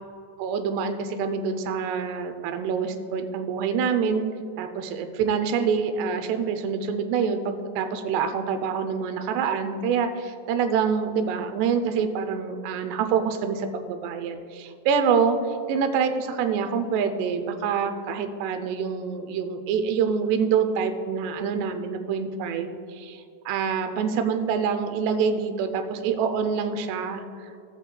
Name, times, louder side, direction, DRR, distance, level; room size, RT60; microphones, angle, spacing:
voice 1, 0.4-4.3 4.6-27.5, right 6 dB, 90° right, 8 dB, 2.8 m, -26 dB
18.0 x 8.1 x 2.2 m, 2.6 s
omnidirectional pair, 4.7 m